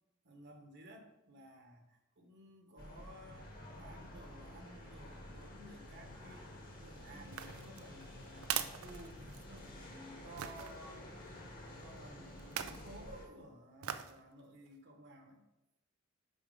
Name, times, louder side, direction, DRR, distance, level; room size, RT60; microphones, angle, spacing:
voice 1, 0.2-11.1 11.6-15.4, right 1 dB, 55° right, 4 dB, 1.1 m, -55 dB
sound 1, 2.8-13.3, left 1 dB, 45° left, 1.7 m, -51 dB
sound 2, 7.2-9.7 10.4-10.7 12.4-12.9 13.8-14.2 14.7-14.8, right 9 dB, 85° right, 0.5 m, -41 dB
6.5 x 4.8 x 5.4 m, 0.91 s
head